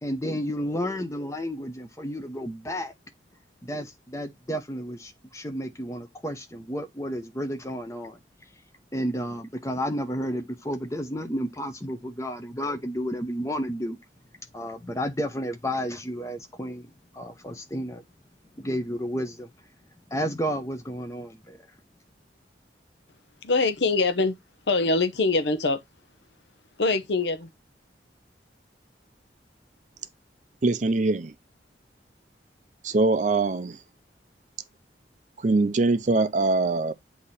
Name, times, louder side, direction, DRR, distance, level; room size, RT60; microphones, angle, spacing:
voice 1, 0.0-2.9 3.6-8.2 8.9-14.0 14.5-18.0 18.5-19.5 20.1-21.7, equal, 15° left, 0.8 m, -31 dB
voice 2, 23.4-24.4 24.7-25.8 26.8-27.5, left 3 dB, 70° left, 0.7 m, -23 dB
voice 3, 30.6-31.3 32.8-33.8 35.4-36.9, right 3 dB, 40° right, 0.5 m, -23 dB
8.2 x 2.9 x 4.1 m
head